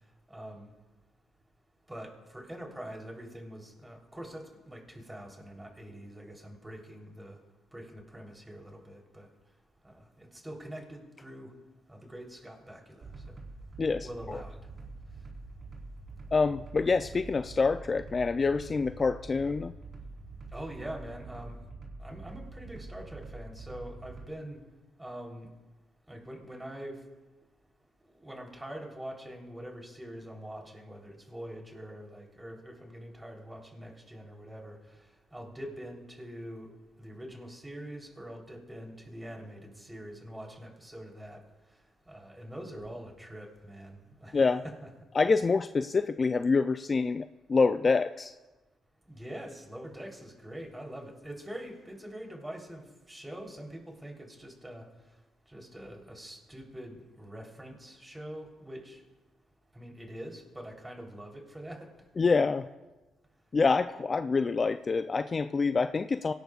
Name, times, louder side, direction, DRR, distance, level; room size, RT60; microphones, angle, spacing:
voice 1, 0.3-0.7 1.9-7.4 7.7-9.3 9.8-11.5 11.9-13.0 14.0-14.6 20.5-21.6 22.0-24.6 25.0-25.5 26.1-27.0 28.2-34.8 35.3-36.7 37.0-41.4 42.1-44.4 44.6-44.9 49.1-54.9 55.5-59.0 59.7-61.9, right 1 dB, 10° right, 0 dB, 3.5 m, -44 dB
sound 1, 13.0-24.3, right 3 dB, 45° right, 3.5 m, -45 dB
voice 2, 13.8-14.4 16.3-19.7 44.3-44.6 45.2-48.3 62.2-62.7 63.5-66.3, left 4 dB, 35° left, 10 dB, 0.4 m, -26 dB
24.0 x 18.0 x 2.4 m, 1.2 s
cardioid pair, 90°, 0 cm